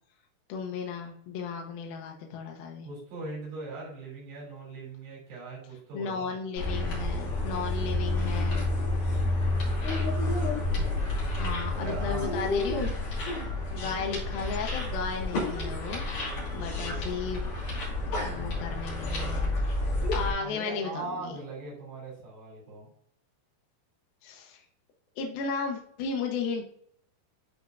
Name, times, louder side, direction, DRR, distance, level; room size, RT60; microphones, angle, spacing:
voice 1, 0.5-2.9 5.9-8.7 11.4-12.9 13.7-16.0 16.5-17.5 18.2-19.8 20.1-21.3 24.2-24.6 25.2-26.6, left 5 dB, 70° left, 1 dB, 2.8 m, -35 dB
voice 2, 2.8-6.4 9.2-9.9 11.7-12.4 13.8-14.0 20.4-22.9, right 3 dB, 85° right, -5 dB, 5.3 m, -40 dB
sound 1, 6.6-20.3, left 2 dB, 50° left, 4.1 m, -30 dB
12.0 x 4.4 x 2.6 m, 0.65 s
omnidirectional pair, 4.6 m